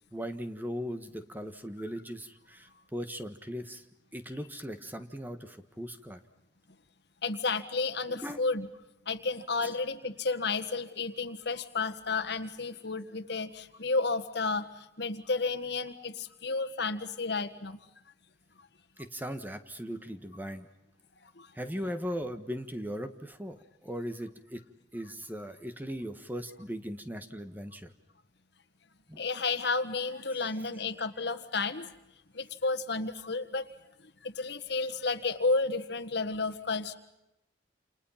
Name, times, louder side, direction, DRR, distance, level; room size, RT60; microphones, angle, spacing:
voice 1, 0.1-3.8 4.1-6.2 8.1-8.5 9.6-9.7 19.0-20.7 21.5-24.7 24.9-27.9 29.1-29.3, equal, 10° right, 8 dB, 1.5 m, -38 dB
voice 2, 7.2-8.7 9.1-17.8 21.4-21.5 29.2-31.9 32.3-33.7 34.2-37.0, left 3 dB, 65° left, 10 dB, 1.7 m, -32 dB
29.0 x 29.0 x 5.8 m, 0.91 s
head